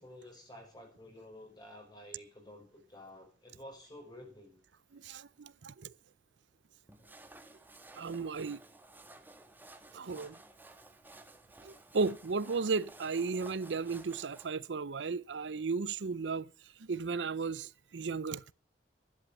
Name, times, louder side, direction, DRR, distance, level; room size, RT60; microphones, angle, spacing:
voice 1, 0.0-4.6 10.0-10.1 11.1-11.2, left 1 dB, 25° left, 5.3 m, -51 dB
voice 2, 4.9-5.9 8.0-8.6 9.9-10.4 11.6-16.5 16.8-18.4, right 4 dB, 80° right, 0.6 m, -35 dB
sound 1, 6.9-14.5, right 2 dB, 10° right, 1.3 m, -55 dB
12.0 x 11.0 x 7.1 m
head